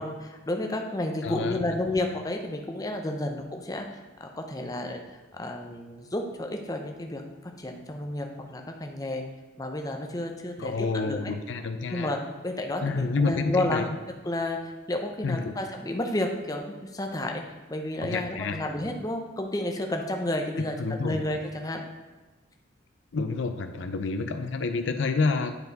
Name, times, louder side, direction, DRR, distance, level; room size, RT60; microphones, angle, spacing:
voice 1, 0.0-5.0 5.3-9.2 9.6-11.3 11.9-13.9 14.2-17.4 17.7-21.8, left 1 dB, 20° left, 3 dB, 0.7 m, -31 dB
voice 2, 1.2-1.8 10.6-12.1 12.8-13.9 15.2-15.5 18.0-18.7 20.8-21.2 23.1-25.5, left 4 dB, 75° left, 8 dB, 0.5 m, -29 dB
9.9 x 4.5 x 4.0 m, 1.2 s
head